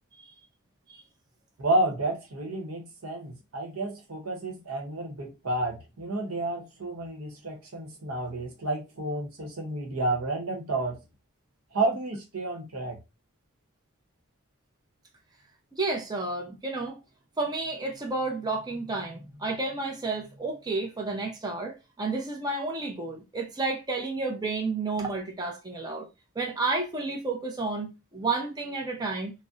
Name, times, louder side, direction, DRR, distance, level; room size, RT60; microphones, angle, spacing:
voice 1, 1.6-11.0 11.7-13.0, right 2 dB, 80° right, 0.9 m, -30 dB
voice 2, 15.7-17.0 17.4-26.1 26.4-29.3, right 3 dB, 20° right, 0.5 m, -31 dB
2.6 x 2.0 x 3.5 m
head